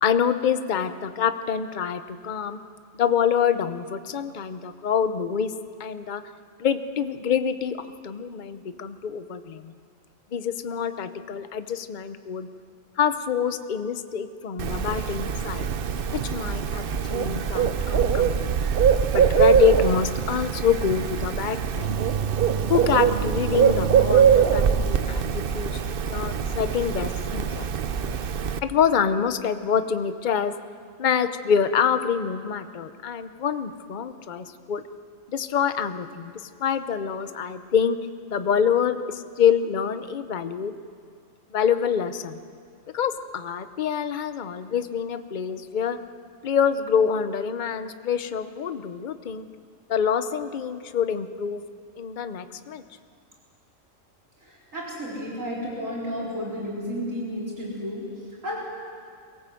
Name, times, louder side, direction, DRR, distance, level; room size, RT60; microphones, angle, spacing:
voice 1, 0.0-2.6 2.9-5.5 5.8-6.2 6.6-9.8 10.3-12.5 13.0-15.7 16.1-18.7 19.1-22.0 22.7-25.8 26.1-27.7 28.6-30.5 31.0-34.8 35.3-36.3 36.6-38.0 38.3-40.7 41.5-42.4 42.9-46.0 46.4-49.4 49.9-51.6 52.0-52.8, left 7 dB, 40° left, 10 dB, 0.8 m, -26 dB
Bird, 14.6-28.6, right 7 dB, 50° right, 0.8 m, -23 dB
voice 2, 54.4-58.6, equal, 75° right, -5 dB, 4.9 m, -32 dB
23.5 x 18.0 x 7.7 m, 2.2 s
omnidirectional pair, 1.4 m